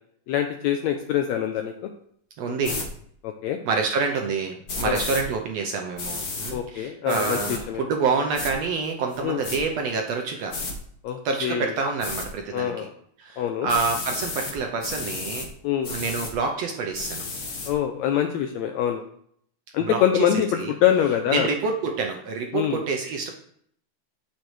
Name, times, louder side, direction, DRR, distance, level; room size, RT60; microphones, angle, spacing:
voice 1, 0.3-1.9 3.2-3.6 4.8-5.0 6.5-7.9 9.2-9.4 11.0-11.7 12.5-12.9 13.4-13.7 15.6-15.9 17.7-19.0 19.7-21.5 22.5-22.8, left 10 dB, 80° left, 6 dB, 1.6 m, -24 dB
voice 2, 2.4-2.8 3.6-10.5 11.2-12.9 13.2-15.5 15.9-17.2 19.8-20.3 20.5-20.7 21.3-23.3, right 4 dB, 70° right, 2 dB, 1.6 m, -27 dB
sound 1, 2.6-2.9 4.7-5.2 6.0-6.5 7.1-7.6 8.3-8.5 9.1-9.6 10.5-10.7 12.0-12.3 13.7-14.5 14.8-15.5 15.8-16.3 16.9-17.7, left 3 dB, 55° left, 1.1 m, -32 dB
11.5 x 6.5 x 3.2 m, 0.66 s
omnidirectional pair, 3.7 m